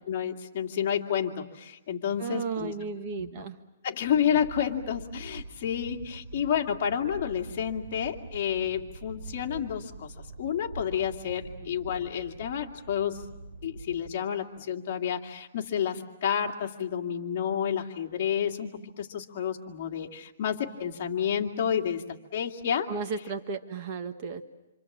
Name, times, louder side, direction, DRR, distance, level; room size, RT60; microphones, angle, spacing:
voice 1, 0.1-2.7 3.2-3.4 3.8-13.3 13.6-22.0 22.3-22.9, left 8 dB, 45° left, 3 dB, 2.2 m, -30 dB
voice 2, 2.2-3.6 11.6-11.7 22.9-24.4, right 5 dB, 30° right, 7 dB, 1.5 m, -34 dB
sound 1, 4.1-14.2, right 3 dB, 50° right, 6.6 m, -44 dB
27.0 x 26.5 x 7.4 m, 0.99 s
hypercardioid pair, 160°, 0 cm